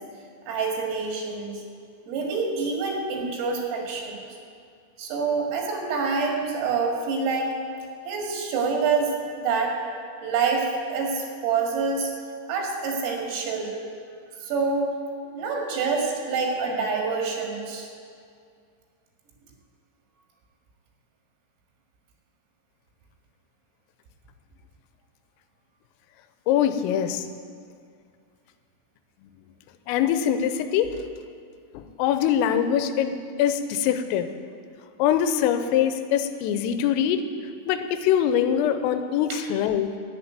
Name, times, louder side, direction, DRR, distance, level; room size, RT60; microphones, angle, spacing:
voice 1, 0.5-1.5 2.1-4.3 5.0-7.5 8.1-9.1 9.4-9.8 10.2-12.1 12.5-13.8 14.4-15.0 15.3-17.9 39.3-39.4, right 4 dB, 80° right, 0 dB, 4.6 m, -26 dB
voice 2, 26.5-27.3 29.9-30.9 31.7-34.3 35.0-37.2 37.7-39.9, left 9 dB, 85° left, 9 dB, 3.2 m, -23 dB
11.0 x 8.7 x 9.3 m, 2.2 s
omnidirectional pair, 5.9 m